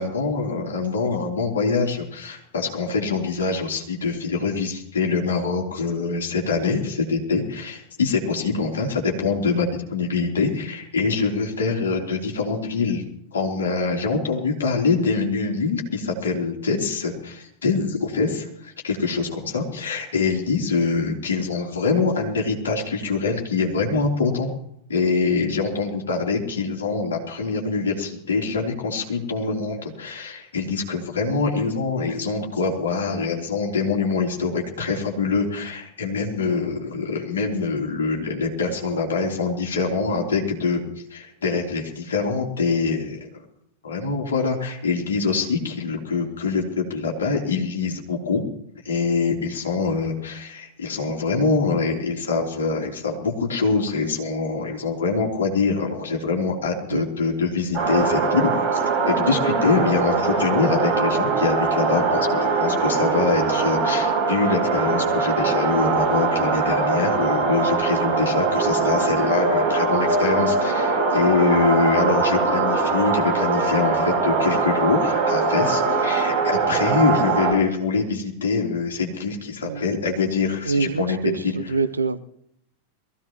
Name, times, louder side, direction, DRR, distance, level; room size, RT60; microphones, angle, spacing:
voice 1, 0.0-13.0 13.3-24.5 24.9-40.8 41.1-43.3 43.8-48.4 48.8-81.8, left 4 dB, 65° left, 3.5 m, -24 dB
sound 1, 57.7-77.5, right 4 dB, 25° right, 7.5 m, -22 dB
voice 2, 80.7-81.4 81.7-82.2, right 4 dB, 80° right, 0.7 m, -24 dB
23.0 x 15.5 x 3.1 m
figure-of-eight pair, 90°, 0 cm